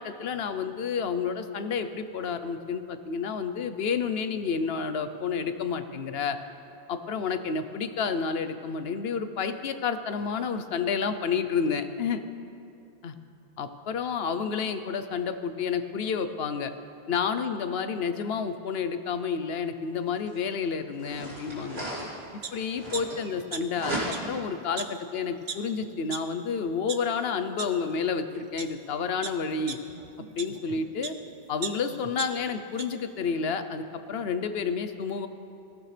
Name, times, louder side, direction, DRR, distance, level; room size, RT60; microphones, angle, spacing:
voice 1, 0.0-6.4 6.9-12.2 13.0-13.1 13.6-16.7 17.1-21.9 22.5-23.9 24.2-29.8 30.3-31.1 31.5-35.3, left 6 dB, 75° left, 10 dB, 1.0 m, -30 dB
sound 1, 20.3-20.4 20.9-23.4 23.7-24.5, right 1 dB, 80° right, 3.6 m, -35 dB
Green Mt Prairie Dog, 22.4-22.5 22.9-23.8 24.1-24.2 24.8-24.9 25.5-25.6 26.1-26.2 26.7-27.0 27.6-27.7 28.4-28.7 29.2-31.2 31.6-32.8 33.3-33.4, right 6 dB, 50° right, 0.8 m, -36 dB
19.5 x 15.0 x 3.3 m, 2.6 s
omnidirectional pair, 1.0 m